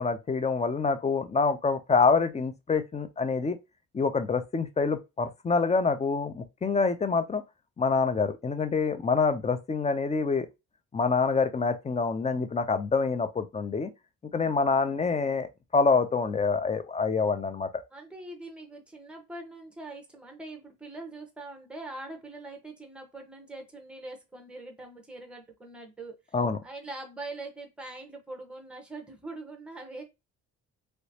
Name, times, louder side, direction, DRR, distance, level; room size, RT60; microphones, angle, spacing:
voice 1, 0.0-3.6 3.9-7.4 7.8-10.5 10.9-13.9 14.3-17.7 26.3-26.6, left 4 dB, 20° left, 0.6 m, -26 dB
voice 2, 17.9-26.4 26.6-30.0, right 2 dB, 5° right, 1.2 m, -43 dB
3.1 x 3.0 x 2.8 m
cardioid pair, 90°, 30 cm